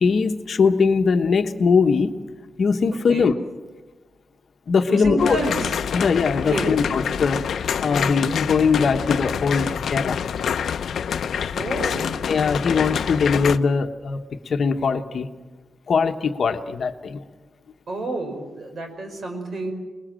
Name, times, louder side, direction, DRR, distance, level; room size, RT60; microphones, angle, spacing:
voice 1, 0.0-2.2 2.6-3.4 4.7-5.4 5.9-7.4 7.8-10.2 12.3-15.3 15.9-17.2, left 5 dB, 55° left, 6 dB, 1.2 m, -21 dB
voice 2, 4.9-5.7 6.5-6.7 11.5-12.1 17.9-19.7, right 2 dB, 50° right, 5 dB, 5.1 m, -29 dB
sound 1, 5.2-13.6, left 7 dB, 85° left, 0.7 m, -26 dB
28.0 x 20.5 x 7.6 m, 1.2 s
wide cardioid pair, 170°, 0 cm